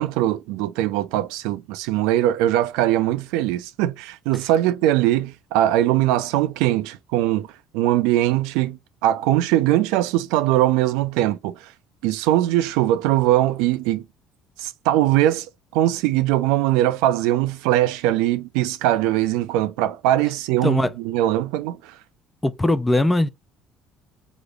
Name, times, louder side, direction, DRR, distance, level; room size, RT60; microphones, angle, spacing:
voice 1, 0.0-7.5 7.7-11.7 12.0-14.1 14.6-15.5 15.7-21.9, right 14 dB, 70° right, 0.5 m, -21 dB
voice 2, 20.6-20.9 22.4-23.3, left 1 dB, 15° left, 0.6 m, -20 dB
5.0 x 2.0 x 4.7 m
hypercardioid pair, 60°, 0 cm